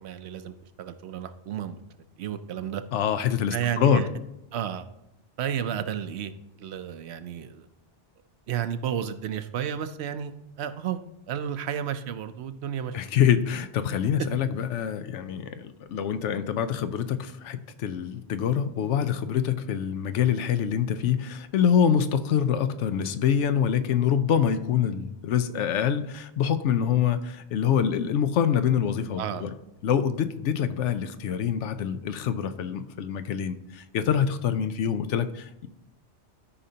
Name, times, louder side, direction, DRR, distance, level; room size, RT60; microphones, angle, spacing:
voice 1, 0.0-2.8 3.5-4.1 4.5-4.9 5.4-7.7 8.5-11.0 11.3-13.0 29.2-29.4, right 9 dB, 70° right, 11 dB, 0.8 m, -32 dB
voice 2, 2.9-4.0 12.9-29.5 29.8-35.7, left 8 dB, 85° left, 11 dB, 0.9 m, -25 dB
13.0 x 5.1 x 2.8 m, 0.88 s
omnidirectional pair, 1.2 m